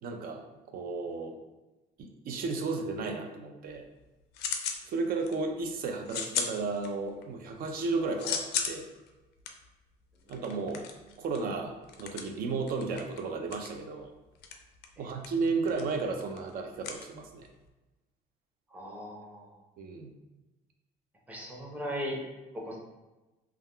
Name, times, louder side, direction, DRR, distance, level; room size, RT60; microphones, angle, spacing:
voice 1, 0.0-1.4 2.0-3.8 4.9-8.9 10.3-10.9 11.2-14.1 15.0-17.5 19.8-20.1, right 4 dB, 60° right, 4 dB, 0.4 m, -33 dB
sound 1, 3.7-4.9 5.2-5.6 6.1-7.2 7.6-17.7, left 6 dB, 75° left, 0.4 m, -37 dB
voice 2, 18.7-19.6 21.3-22.2 22.5-22.8, equal, 10° right, -2 dB, 0.7 m, -38 dB
3.4 x 2.3 x 2.2 m, 1.1 s
cardioid pair, 110°, 17 cm